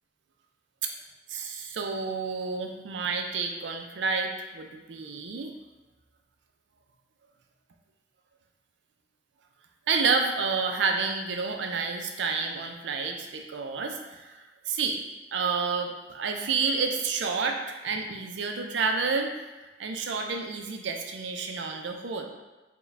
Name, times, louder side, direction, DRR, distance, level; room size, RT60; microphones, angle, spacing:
voice 1, 1.3-5.5 9.9-15.0 15.3-19.3 19.8-22.2, right 4 dB, 80° right, 3 dB, 0.4 m, -29 dB
4.5 x 2.2 x 3.3 m, 1.1 s
head